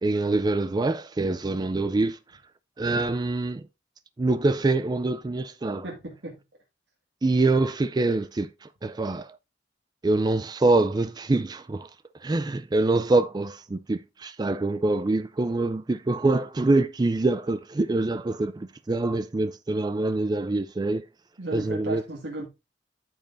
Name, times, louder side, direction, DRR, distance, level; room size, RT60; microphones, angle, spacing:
voice 1, 0.0-2.2 2.8-3.7 4.2-5.8 7.2-9.4 10.0-11.9 12.2-21.0 21.5-22.0, right 2 dB, 25° right, 0.4 m, -25 dB
voice 2, 5.8-6.4 21.4-22.5, right 2 dB, 90° right, 2.0 m, -35 dB
12.5 x 5.3 x 2.6 m
head